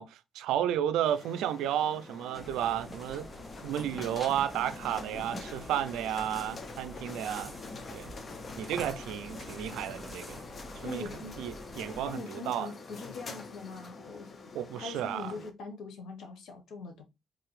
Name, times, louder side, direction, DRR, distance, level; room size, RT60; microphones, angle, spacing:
voice 1, 0.0-3.3 3.6-7.6 7.9-8.1 8.6-10.4 10.8-11.0 11.4-12.7 14.5-15.4, right 10 dB, 90° right, 0.4 m, -32 dB
sound 1, 1.1-15.5, left 3 dB, 40° left, 0.7 m, -45 dB
sound 2, 2.3-12.1, equal, 20° left, 1.4 m, -46 dB
voice 2, 10.8-11.5 12.0-14.4 14.8-17.0, left 4 dB, 75° left, 1.0 m, -42 dB
3.7 x 2.8 x 3.1 m
cardioid pair, 90°, 0 cm